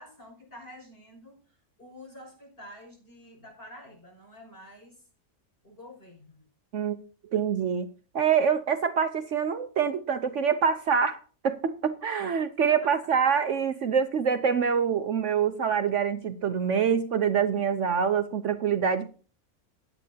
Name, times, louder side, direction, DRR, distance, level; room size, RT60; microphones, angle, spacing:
voice 1, 0.0-5.1 5.6-6.4 12.6-13.2, left 1 dB, 40° left, 2 dB, 6.4 m, -49 dB
voice 2, 7.3-7.9 8.1-11.2 11.4-19.1, right 7 dB, 60° right, 9 dB, 1.0 m, -25 dB
16.5 x 10.5 x 2.8 m, 0.39 s
omnidirectional pair, 1.6 m